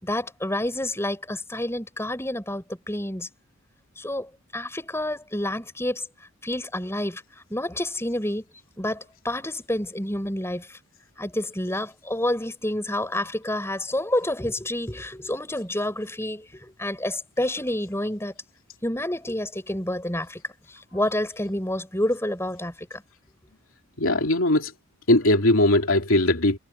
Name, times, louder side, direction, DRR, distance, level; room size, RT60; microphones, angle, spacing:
voice 1, 0.0-3.3 4.0-6.0 6.4-7.2 7.5-8.4 8.8-10.8 11.2-18.3 18.8-20.4 20.7-23.0, left 1 dB, 10° left, 7.1 m, -29 dB
voice 2, 24.0-24.7 25.1-26.6, left 1 dB, 65° left, 3.0 m, -20 dB
head